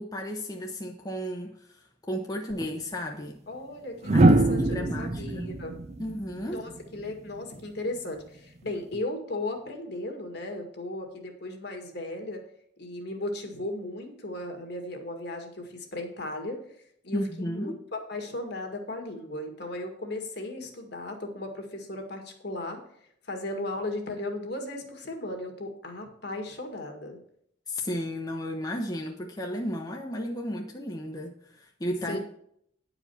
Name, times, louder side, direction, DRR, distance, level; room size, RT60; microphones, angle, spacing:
voice 1, 0.0-3.4 4.1-5.5 6.0-6.7 17.1-17.8 27.7-32.2, equal, 20° left, 0 dB, 0.9 m, -34 dB
sound 1, 2.5-2.7 4.0-7.1 8.7-9.0, right 2 dB, 35° right, 0.6 m, -23 dB
voice 2, 3.5-5.7 6.5-12.4 12.8-16.6 17.0-22.8 23.2-27.2 32.1-32.2, left 2 dB, 60° left, 3 dB, 2.0 m, -36 dB
10.5 x 5.0 x 7.0 m, 0.69 s
head